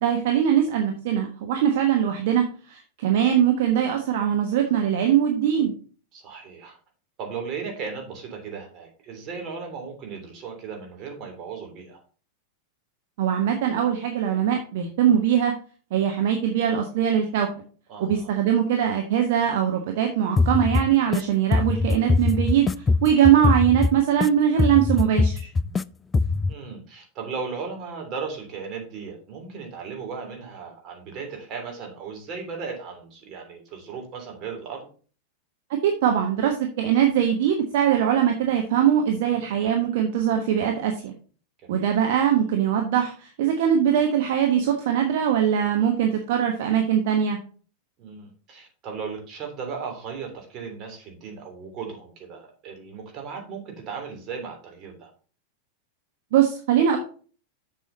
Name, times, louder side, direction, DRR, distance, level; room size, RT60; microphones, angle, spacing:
voice 1, 0.0-5.7 13.2-15.5 15.9-17.5 18.0-22.7 23.0-25.4 35.8-41.1 41.7-47.4 56.3-57.0, right 9 dB, 50° right, 4 dB, 1.2 m, -21 dB
voice 2, 6.1-6.8 7.2-12.0 17.9-18.3 23.2-23.4 26.5-34.9 41.6-41.8 48.0-55.1, right 5 dB, 35° right, 2 dB, 3.3 m, -36 dB
sound 1, 20.4-21.2 21.5-24.3 24.6-25.8 26.1-26.5, left 3 dB, 15° left, 0.3 m, -22 dB
7.2 x 7.0 x 4.0 m, 0.40 s
figure-of-eight pair, 90°, 0 cm